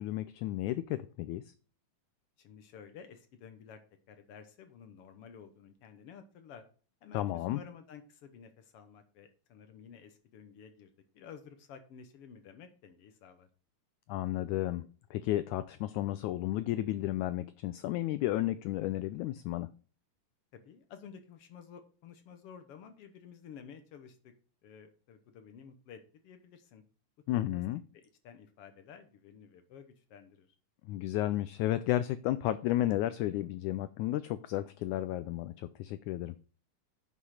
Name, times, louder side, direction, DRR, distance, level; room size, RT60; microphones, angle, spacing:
voice 1, 0.0-1.5 7.1-7.6 14.1-19.7 27.3-27.8 30.8-36.3, left 14 dB, 85° left, 1.7 m, -33 dB
voice 2, 2.4-3.8 4.1-6.6 7.0-13.5 20.5-24.3 24.6-26.8 27.3-27.4 27.9-30.5, left 7 dB, 70° left, 1.4 m, -52 dB
10.0 x 5.6 x 4.8 m
omnidirectional pair, 4.0 m